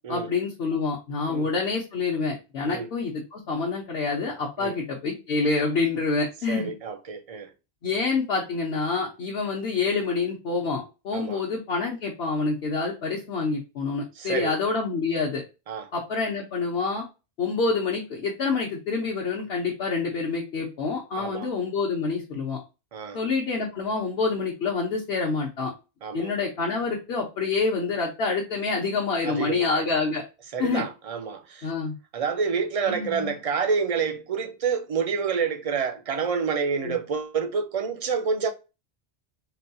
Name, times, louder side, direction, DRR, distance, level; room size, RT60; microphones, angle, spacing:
voice 1, 0.1-6.7 7.8-15.4 15.9-17.0 17.4-22.6 23.1-25.7 26.1-30.2 30.6-30.9 31.6-31.9 32.9-33.3 36.8-37.0, left 4 dB, 70° left, 1.1 m, -27 dB
voice 2, 6.5-7.5 11.1-11.4 14.2-14.6 15.7-15.9 21.2-21.5 22.9-23.2 26.0-26.3 29.2-29.9 30.5-31.7 32.1-38.5, right 6 dB, 55° right, 0.4 m, -28 dB
3.8 x 2.3 x 2.6 m
omnidirectional pair, 1.1 m